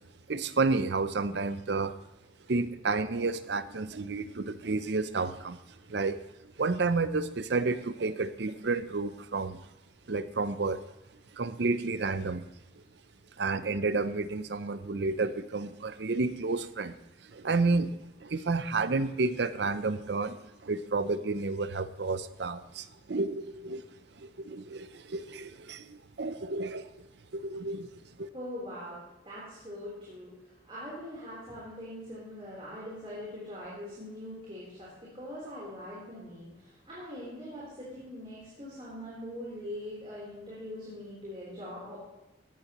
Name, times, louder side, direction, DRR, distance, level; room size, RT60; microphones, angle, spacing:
voice 1, 0.3-2.0 2.5-5.6 5.9-6.2 6.6-9.7 10.1-10.8 11.3-12.4 13.4-17.0 17.2-23.8 24.2-26.9 27.3-27.9 28.2-28.3, right 3 dB, 65° right, 13 dB, 0.6 m, -31 dB
voice 2, 28.3-42.0, left 1 dB, 30° right, -7 dB, 3.8 m, -42 dB
16.0 x 12.0 x 3.0 m, 1.0 s
head